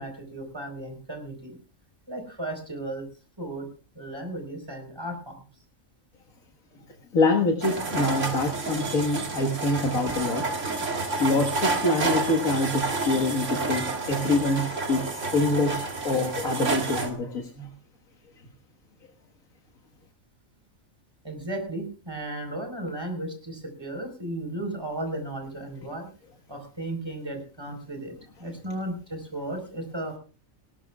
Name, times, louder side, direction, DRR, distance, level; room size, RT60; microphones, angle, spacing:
voice 1, 0.0-1.5 2.1-3.0 3.4-3.7 4.0-5.3 21.2-26.1 26.5-28.1 28.4-28.9 29.3-30.2, right 1 dB, 20° right, 3 dB, 4.4 m, -35 dB
voice 2, 7.1-10.5 11.2-17.7, left 2 dB, 85° left, 2 dB, 2.0 m, -25 dB
sound 1, 7.6-17.1, right 3 dB, 60° right, 2.2 m, -29 dB
19.5 x 17.5 x 2.4 m, 0.38 s
omnidirectional pair, 1.4 m